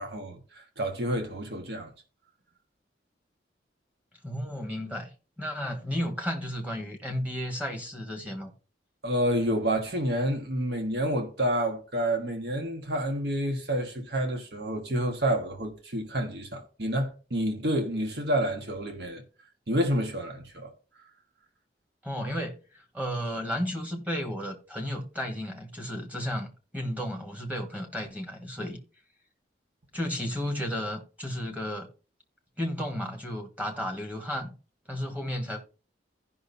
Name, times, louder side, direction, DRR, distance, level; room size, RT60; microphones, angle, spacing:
voice 1, 0.0-1.9 9.0-19.2 19.7-20.7, right 1 dB, 60° right, 1.5 m, -29 dB
voice 2, 4.2-5.1 5.4-8.5 22.0-28.8 29.9-31.9 32.6-34.5 34.9-35.6, equal, 10° right, 1.4 m, -33 dB
15.5 x 5.7 x 2.7 m
head